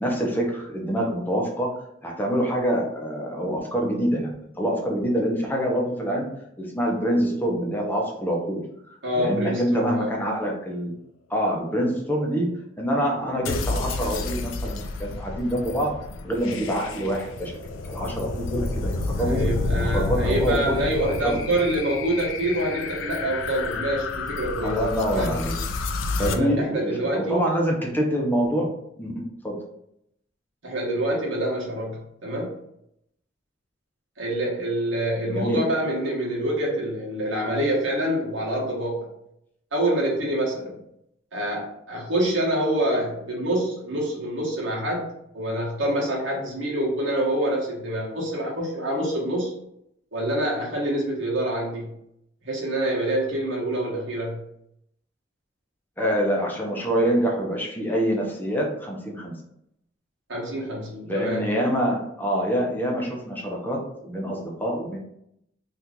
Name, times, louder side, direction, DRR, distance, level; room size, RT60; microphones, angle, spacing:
voice 1, 0.0-1.7 2.0-6.3 6.6-8.6 8.9-10.9 11.3-12.5 12.8-15.9 16.2-17.5 17.9-19.4 19.9-20.7 21.2-21.4 24.6-25.5 26.2-28.6 29.0-29.1 29.4-29.5 35.3-35.6 56.0-59.3 61.0-65.0, equal, 10° left, -1 dB, 0.7 m, -25 dB
voice 2, 9.0-10.1 19.2-24.8 25.1-25.3 26.2-27.5 30.6-32.5 34.2-39.1 39.7-40.8 41.3-49.5 50.1-51.9 52.4-54.4 60.3-61.5, right 1 dB, 70° right, -4 dB, 1.1 m, -26 dB
sound 1, 13.5-26.4, left 3 dB, 75° left, 0.4 m, -30 dB
2.9 x 2.5 x 3.6 m, 0.76 s
head